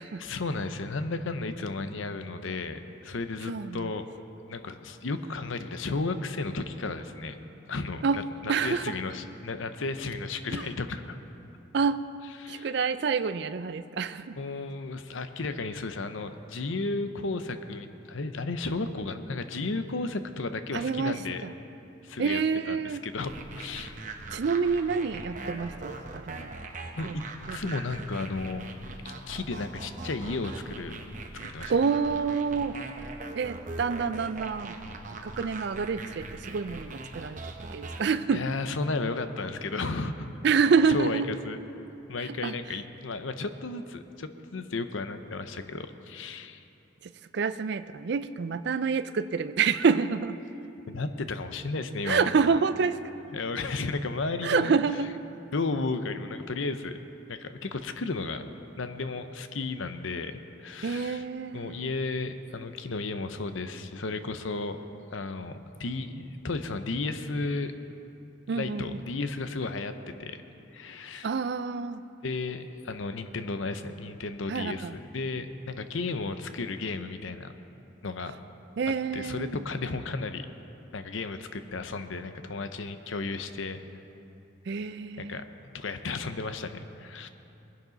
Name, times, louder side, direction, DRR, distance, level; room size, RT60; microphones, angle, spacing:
voice 1, 0.2-4.1 4.5-7.4 7.7-11.2 12.4-12.7 14.4-21.5 22.0-22.4 22.7-23.9 26.9-27.2 27.5-28.6 29.0-31.0 31.4-31.7 38.3-40.3 40.9-41.6 42.1-46.6 50.9-52.6 53.3-54.8 55.5-57.0 57.3-58.4 58.8-61.3 61.5-64.8 65.1-67.8 68.5-69.9 70.2-70.4 70.7-71.3 72.2-77.5 78.0-78.3 79.1-80.5 80.9-83.8 85.2-85.4 85.7-87.3, left 3 dB, 70° left, 9 dB, 0.7 m, -33 dB
voice 2, 3.5-3.9 8.0-8.2 8.5-8.9 10.5-10.6 11.7-12.0 12.5-14.4 20.7-21.5 22.2-23.0 24.3-26.5 27.0-27.2 27.5-27.6 31.7-32.8 33.3-34.7 35.2-37.4 37.7-38.4 40.4-41.3 42.3-42.5 47.0-50.4 52.1-53.0 54.4-55.1 60.8-61.9 68.5-69.0 71.2-72.0 74.5-74.9 78.8-79.6 84.7-85.4, right 5 dB, 55° right, 12 dB, 0.4 m, -27 dB
sound 1, 23.3-38.0, right 2 dB, 40° right, 0.8 m, -41 dB
20.5 x 10.5 x 4.0 m, 2.9 s
head